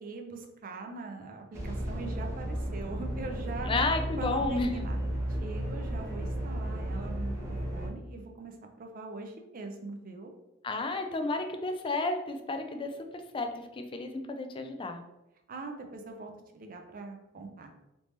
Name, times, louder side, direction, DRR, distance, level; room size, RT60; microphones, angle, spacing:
voice 1, 0.0-3.7 4.2-5.0 5.4-10.3 15.5-17.7, right 3 dB, 45° right, 4 dB, 0.5 m, -42 dB
sound 1, 1.5-7.9, right 1 dB, 15° right, 0.8 m, -34 dB
voice 2, 3.6-4.7 10.6-12.9 13.3-15.0, left 3 dB, 25° left, 6 dB, 0.3 m, -31 dB
3.2 x 2.8 x 3.1 m, 0.94 s
head